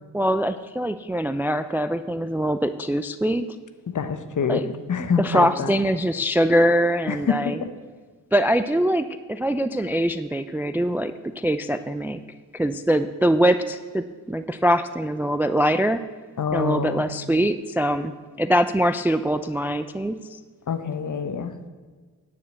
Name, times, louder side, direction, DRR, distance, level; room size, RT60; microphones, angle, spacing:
voice 1, 0.1-3.5 4.5-4.6 5.2-7.6 8.3-12.2 12.5-16.0 16.5-18.1 18.4-20.2, equal, 5° right, 11 dB, 0.3 m, -23 dB
voice 2, 3.9-5.7 7.1-7.7 16.4-17.1 20.7-21.7, left 6 dB, 45° left, 10 dB, 0.9 m, -26 dB
9.7 x 5.2 x 7.9 m, 1.5 s
supercardioid pair, 45°, 42 cm